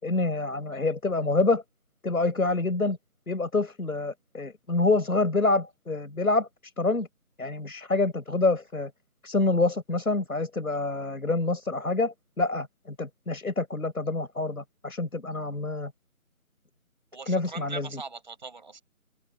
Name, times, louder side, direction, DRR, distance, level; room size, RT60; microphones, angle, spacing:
voice 1, 0.0-1.6 2.0-3.0 3.3-6.5 6.8-7.1 7.4-8.9 9.2-15.9 17.3-18.0, left 3 dB, 90° left, 5.8 m, -27 dB
voice 2, 17.1-18.8, right 4 dB, 35° right, 6.1 m, -40 dB
open air
figure-of-eight pair, 175°, 42 cm